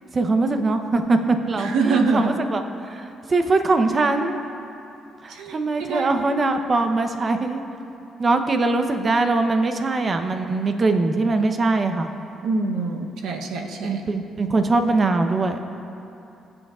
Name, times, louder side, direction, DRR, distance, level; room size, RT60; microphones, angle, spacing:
voice 1, 0.1-2.6 2.9-4.4 5.2-7.6 8.2-12.1 13.8-15.6, right 3 dB, 35° right, 7 dB, 0.8 m, -22 dB
voice 2, 1.6-2.4 5.3-6.1 12.4-14.0, right 4 dB, 85° right, 3 dB, 0.9 m, -24 dB
21.0 x 7.9 x 2.5 m, 2.8 s
cardioid pair, 90°, 0 cm